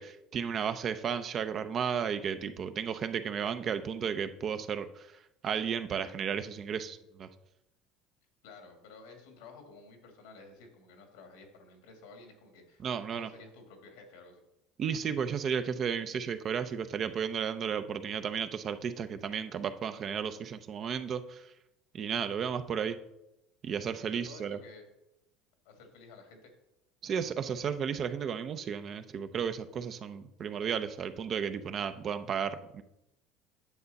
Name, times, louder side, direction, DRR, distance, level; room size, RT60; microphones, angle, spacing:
voice 1, 0.0-5.1 5.4-7.3 12.8-13.3 14.8-21.5 21.9-23.0 23.6-24.6 27.0-32.8, right 7 dB, 45° right, 10 dB, 0.7 m, -33 dB
voice 2, 8.4-14.4 24.1-24.9 25.6-26.5, left 4 dB, 85° left, 4 dB, 2.1 m, -52 dB
9.4 x 6.6 x 4.1 m, 0.87 s
supercardioid pair, 100°, 0 cm